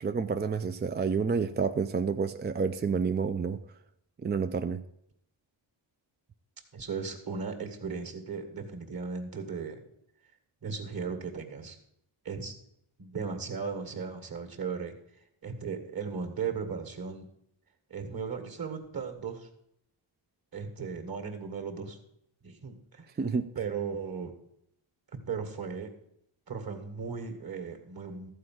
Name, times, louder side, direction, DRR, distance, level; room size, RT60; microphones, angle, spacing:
voice 1, 0.0-3.6 4.2-4.8 23.2-23.5, right 5 dB, 25° right, 0.3 m, -29 dB
voice 2, 6.7-9.8 10.6-11.8 12.2-12.5 13.0-14.9 15.4-17.3 17.9-19.5 20.5-22.0 22.4-23.1 23.6-24.3 25.3-25.9 26.5-28.3, right 5 dB, 45° right, 2.0 m, -36 dB
14.0 x 4.7 x 7.7 m
wide cardioid pair, 125°, 49 cm